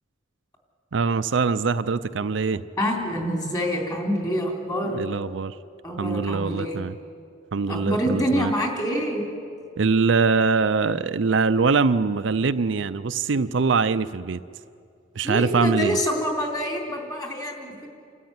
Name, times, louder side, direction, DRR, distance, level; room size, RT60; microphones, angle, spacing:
voice 1, 0.9-2.6 4.9-5.6 6.0-7.0 7.5-8.5 9.8-14.4 15.1-16.0, right 4 dB, 65° right, 12 dB, 0.5 m, -23 dB
voice 2, 2.8-5.0 5.8-6.8 7.6-9.2 15.2-17.9, equal, 20° left, 1 dB, 3.4 m, -26 dB
28.5 x 13.5 x 9.6 m, 2.4 s
head